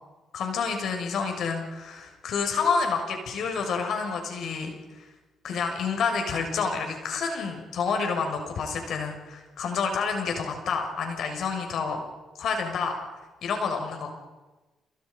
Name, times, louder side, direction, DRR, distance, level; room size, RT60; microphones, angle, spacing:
voice 1, 0.3-5.0 5.4-12.0 12.4-12.9 13.4-14.1, left 5 dB, 70° left, 4 dB, 6.9 m, -29 dB
29.5 x 28.0 x 5.7 m, 1.2 s
cardioid pair, 90°, 0 cm